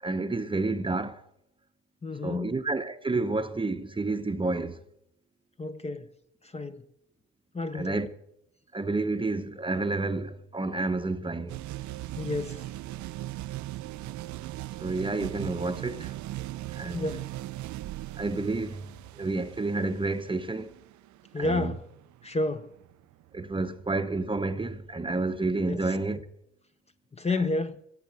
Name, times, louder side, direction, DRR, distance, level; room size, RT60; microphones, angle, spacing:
voice 1, 0.0-1.2 2.2-4.8 7.7-8.1 8.7-11.6 14.8-16.1 16.7-17.1 18.2-20.7 21.4-21.7 23.3-26.2, right 3 dB, 15° right, 0.8 m, -30 dB
voice 2, 2.0-2.5 5.6-6.1 6.4-6.8 7.5-8.0 12.2-12.7 16.9-17.3 21.3-21.8 22.2-22.7 25.7-25.8 27.1-27.8, left 2 dB, 20° left, 0.8 m, -30 dB
sound 1, 11.5-25.2, right 15 dB, 70° right, 0.5 m, -39 dB
16.5 x 8.4 x 8.0 m
cardioid pair, 90°, 30 cm